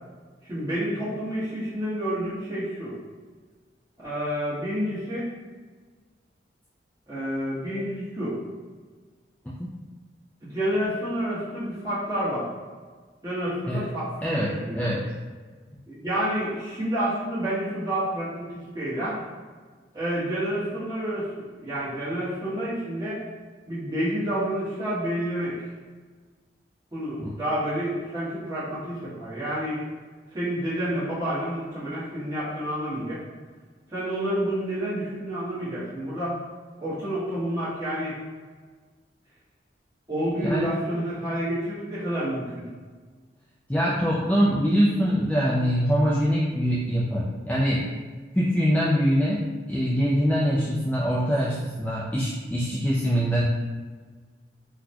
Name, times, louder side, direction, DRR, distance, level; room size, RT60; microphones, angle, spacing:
voice 1, 0.4-2.9 4.0-5.3 7.1-8.4 10.4-12.5 13.2-14.8 15.9-18.4 18.7-19.2 19.9-23.2 23.7-25.6 26.9-29.8 30.3-33.2 33.9-36.4 36.8-38.2 40.1-42.6, equal, 20° right, -12 dB, 1.4 m, -29 dB
voice 2, 14.2-15.0 27.2-27.3 40.4-40.6 43.7-47.8 48.4-49.4 49.7-53.4, equal, 5° left, -7 dB, 0.3 m, -23 dB
3.9 x 2.2 x 2.8 m, 1.4 s
head